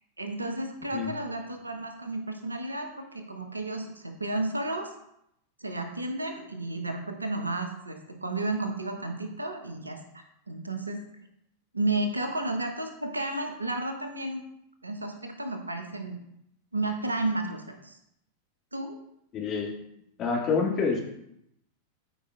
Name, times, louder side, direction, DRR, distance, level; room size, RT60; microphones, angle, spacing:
voice 1, 0.2-4.9 5.6-11.0 11.7-14.5 14.8-16.2 16.7-18.0 18.7-19.0, right 2 dB, 80° right, 5 dB, 1.0 m, -32 dB
voice 2, 19.3-19.7 20.2-21.0, left 5 dB, 30° left, -1 dB, 2.0 m, -27 dB
13.5 x 5.0 x 2.4 m, 0.78 s
figure-of-eight pair, 90°, 0 cm